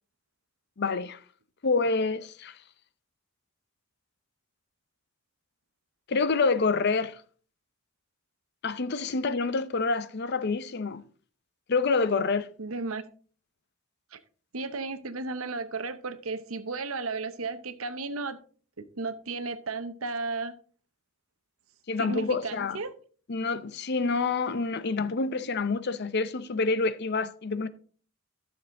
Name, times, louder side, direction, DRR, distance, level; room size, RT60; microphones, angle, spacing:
voice 1, 0.8-1.2 1.6-2.6 6.1-7.2 8.6-11.0 11.7-12.5 21.9-22.8 23.3-27.7, left 4 dB, 55° left, 0.6 m, -27 dB
voice 2, 12.6-13.0 14.1-14.2 14.5-18.4 18.8-20.5 22.0-22.9, right 3 dB, 85° right, 0.9 m, -34 dB
12.0 x 7.0 x 3.7 m
head